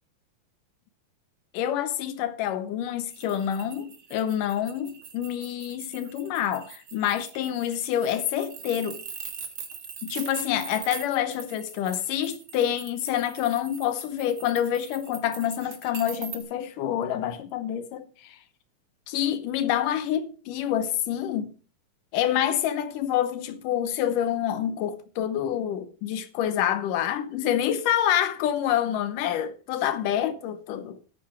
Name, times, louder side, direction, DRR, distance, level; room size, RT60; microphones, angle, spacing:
voice 1, 1.5-9.0 10.0-18.4 19.1-21.5 22.1-31.0, left 10 dB, 80° left, 2.5 m, -27 dB
sound 1, 3.1-16.4, right 7 dB, 50° right, 2.1 m, -42 dB
10.0 x 9.0 x 5.9 m
omnidirectional pair, 3.7 m